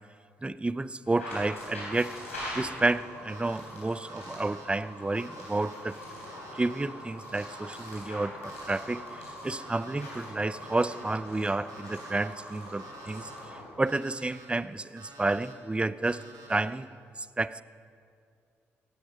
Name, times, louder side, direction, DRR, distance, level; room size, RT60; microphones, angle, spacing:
voice 1, 0.4-2.2 2.5-6.0 6.5-16.2 16.5-16.9 17.4-17.6, right 2 dB, 15° right, 17 dB, 0.6 m, -30 dB
sound 1, 1.0-13.7, equal, 90° left, 3.6 m, -42 dB
Alarm, 3.2-3.6 4.1-4.7 5.2-5.8 6.3-6.8 7.3-7.9 8.4-9.0 9.5-10.1 10.6-11.2 11.7-12.3 12.8-13.4 13.9-14.5 15.0-15.5 16.0-16.6, right 3 dB, 60° right, 3.0 m, -51 dB
16.5 x 16.5 x 5.4 m, 2.2 s
figure-of-eight pair, 40°, 7 cm